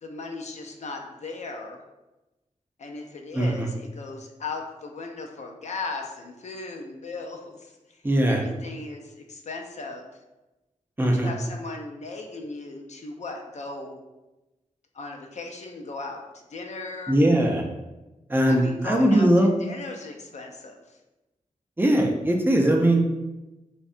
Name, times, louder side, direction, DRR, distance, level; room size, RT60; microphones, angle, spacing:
voice 1, 0.0-1.8 2.8-10.1 11.0-14.0 14.9-16.2 16.5-17.2 18.5-19.3 19.6-21.0, left 3 dB, 60° left, 2 dB, 0.4 m, -37 dB
voice 2, 3.3-3.7 8.0-8.4 11.0-11.3 17.1-17.6 18.3-19.5 21.8-23.0, right 1 dB, 15° right, 1 dB, 0.4 m, -20 dB
2.7 x 2.1 x 2.5 m, 1.0 s
cardioid pair, 55°, 14 cm